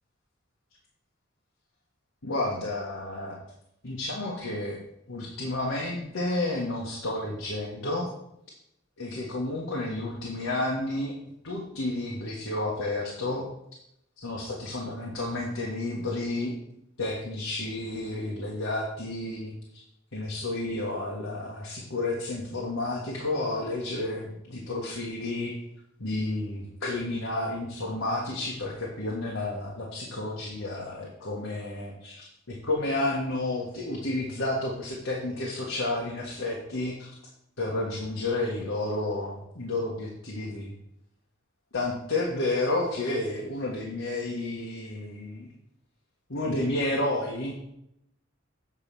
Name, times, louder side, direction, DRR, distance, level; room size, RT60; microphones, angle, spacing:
voice 1, 2.2-3.4 3.8-4.8 5.1-8.1 9.0-11.1 11.4-13.4 14.2-16.5 17.0-19.5 20.1-25.5 26.0-37.1 37.6-40.7 41.7-45.5 46.3-47.5, left 2 dB, 80° left, -3 dB, 1.7 m, -31 dB
8.2 x 4.9 x 7.0 m, 0.77 s
head